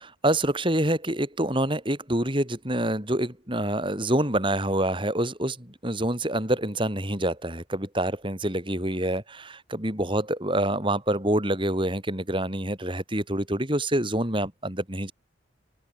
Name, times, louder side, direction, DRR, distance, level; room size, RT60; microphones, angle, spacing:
voice 1, 0.2-15.1, right 1 dB, 25° right, 5.1 m, -26 dB
open air
head